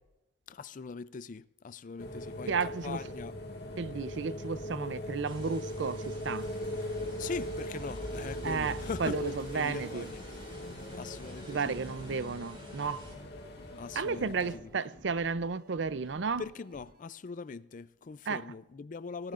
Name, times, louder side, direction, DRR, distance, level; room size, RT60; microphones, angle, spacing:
voice 1, 0.5-3.4 7.2-9.2 9.5-10.2 10.9-11.8 13.7-14.7 16.4-19.3, left 5 dB, 45° left, 0.4 m, -41 dB
sound 1, 2.0-14.6, left 1 dB, 65° left, 1.9 m, -40 dB
voice 2, 2.5-3.0 3.8-6.5 8.4-10.1 11.5-13.0 13.9-16.4 18.3-18.4, right 5 dB, 75° right, 0.6 m, -33 dB
sound 2, 5.2-13.2, right 2 dB, 30° right, 3.6 m, -54 dB
sound 3, 8.0-17.0, right 1 dB, 55° right, 1.5 m, -58 dB
19.5 x 18.0 x 2.5 m
head